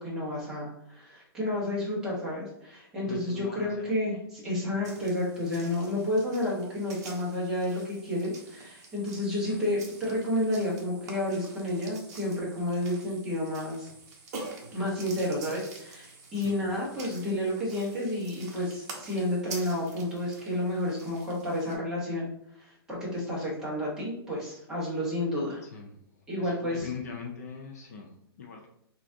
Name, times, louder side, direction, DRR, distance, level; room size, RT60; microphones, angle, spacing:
voice 1, 0.0-13.9 14.7-22.3 22.6-25.6 26.3-26.9, left 1 dB, 5° right, -7 dB, 0.9 m, -31 dB
voice 2, 3.1-3.9 4.5-4.9 9.4-9.6 16.4-16.6 25.6-26.0 26.4-28.7, left 6 dB, 40° left, 1 dB, 0.5 m, -42 dB
sound 1, 4.8-21.7, right 3 dB, 40° right, 1.0 m, -47 dB
5.7 x 2.5 x 2.6 m, 0.72 s
hypercardioid pair, 175°, 13 cm